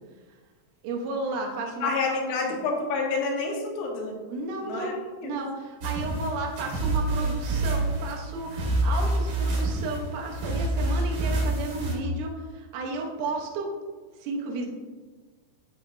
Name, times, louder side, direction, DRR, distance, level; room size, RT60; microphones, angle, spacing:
voice 1, 0.8-2.2 2.5-2.6 4.3-4.9 5.2-13.7 14.2-14.7, right 3 dB, 80° right, 0 dB, 3.2 m, -33 dB
voice 2, 1.8-4.1 4.6-4.9 5.2-5.3, left 4 dB, 90° left, 0 dB, 3.4 m, -28 dB
sound 1, 5.8-11.9, right 2 dB, 65° right, 2.0 m, -27 dB
9.8 x 4.2 x 2.5 m, 1.4 s
omnidirectional pair, 5.3 m